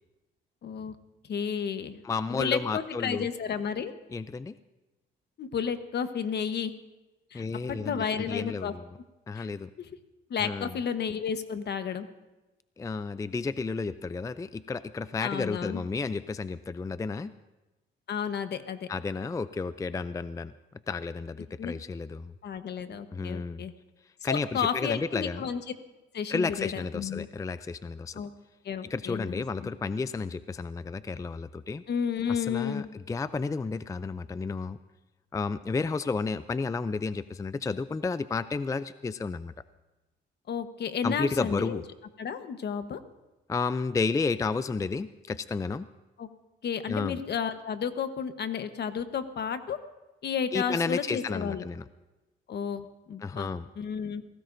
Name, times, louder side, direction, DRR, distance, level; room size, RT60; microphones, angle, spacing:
voice 1, 0.6-1.0 1.3-2.0 2.3-3.9 5.4-6.7 7.3-7.4 7.7-8.7 9.3-9.5 9.8-9.9 10.3-12.1 15.2-15.8 18.1-18.9 21.6-21.7 22.4-23.7 24.2-25.6 26.1-27.3 28.1-28.3 28.6-29.7 31.9-32.9 40.5-41.8 42.2-43.0 46.2-46.3 46.6-49.8 50.2-51.6 52.5-53.5 53.8-54.2, left 7 dB, 55° left, 10 dB, 1.1 m, -32 dB
voice 2, 2.0-3.3 4.1-4.5 7.3-8.0 8.3-8.8 9.3-9.7 10.4-10.7 12.8-17.3 18.9-20.5 20.9-22.3 23.1-23.6 24.2-25.4 26.3-28.2 28.8-31.8 32.3-34.8 35.3-39.5 41.0-41.8 43.5-45.9 46.9-47.2 50.5-51.8 53.2-53.7, left 4 dB, 15° left, 14 dB, 0.4 m, -32 dB
25.5 x 17.5 x 2.6 m, 1.1 s
cardioid pair, 90°, 20 cm